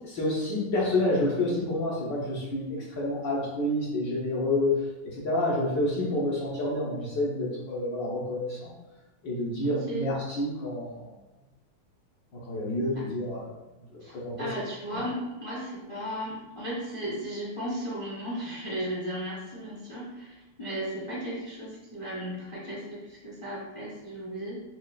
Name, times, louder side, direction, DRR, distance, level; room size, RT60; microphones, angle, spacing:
voice 1, 0.0-4.8 5.0-8.7 9.2-11.1 12.5-13.4 14.1-14.5 14.9-15.0, left 1 dB, 65° left, -5 dB, 1.3 m, -28 dB
voice 2, 9.6-10.1 12.9-13.0 14.0-24.6, equal, 40° left, -7 dB, 0.4 m, -35 dB
6.3 x 2.4 x 2.3 m, 1.1 s
omnidirectional pair, 2.4 m